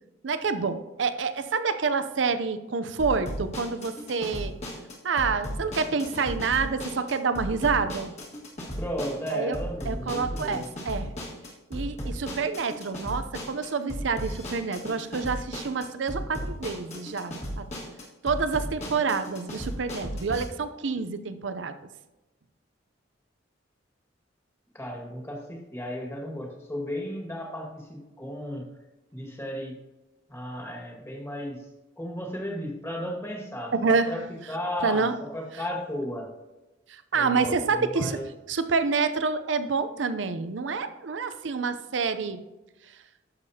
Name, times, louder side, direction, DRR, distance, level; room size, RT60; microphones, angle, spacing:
voice 1, 0.2-4.5 5.0-8.1 9.3-9.6 9.9-11.1 11.7-17.6 18.2-21.8 33.7-34.2 34.8-35.1 36.9-38.2 38.5-42.4, right 4 dB, 70° right, 11 dB, 0.6 m, -28 dB
sound 1, 3.0-20.4, equal, 35° left, 1.8 m, -36 dB
voice 2, 8.8-10.7 24.7-28.6 29.1-29.7 30.3-31.6 32.0-36.3 37.1-38.2, equal, 15° left, 0 dB, 1.8 m, -34 dB
11.5 x 6.6 x 2.8 m, 1.1 s
head